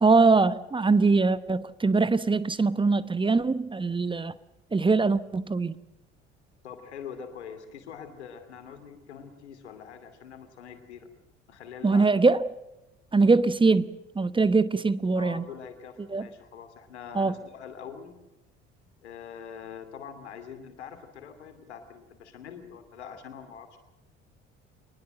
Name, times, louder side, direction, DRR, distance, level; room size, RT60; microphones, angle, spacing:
voice 1, 0.0-4.3 4.7-5.8 11.8-12.4 13.1-15.4 16.1-16.3 17.1-17.3, right 3 dB, 15° right, 1.0 m, -22 dB
voice 2, 6.6-11.1 11.5-12.1 15.2-18.2 19.0-23.8, left 7 dB, 75° left, 2.7 m, -44 dB
24.0 x 20.0 x 7.7 m
figure-of-eight pair, 55°, 34 cm